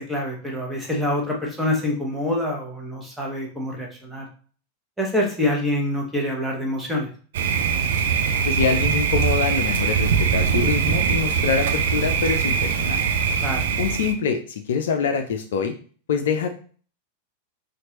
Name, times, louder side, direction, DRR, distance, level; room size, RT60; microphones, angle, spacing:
voice 1, 0.0-4.3 5.0-7.1 13.4-13.6, left 1 dB, 5° right, -1 dB, 1.1 m, -26 dB
Thunder, 7.3-14.1, right 6 dB, 55° right, 0.4 m, -22 dB
voice 2, 8.5-13.0 13.8-15.7 16.1-16.5, left 6 dB, 60° left, 5 dB, 0.4 m, -25 dB
4.4 x 2.5 x 2.9 m, 0.41 s
figure-of-eight pair, 90°, 0 cm